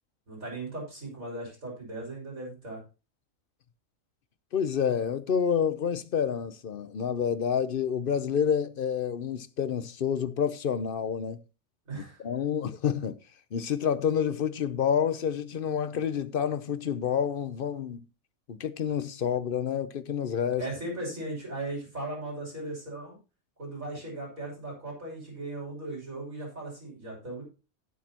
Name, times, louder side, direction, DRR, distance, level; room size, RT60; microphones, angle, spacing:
voice 1, 0.3-2.8 11.9-12.2 20.6-23.2 23.6-27.4, right 2 dB, 80° right, 6.4 m, -37 dB
voice 2, 4.5-11.4 11.9-13.2 13.5-18.0 18.5-20.6, left 7 dB, 50° left, 0.8 m, -28 dB
18.0 x 6.5 x 2.9 m
omnidirectional pair, 1.4 m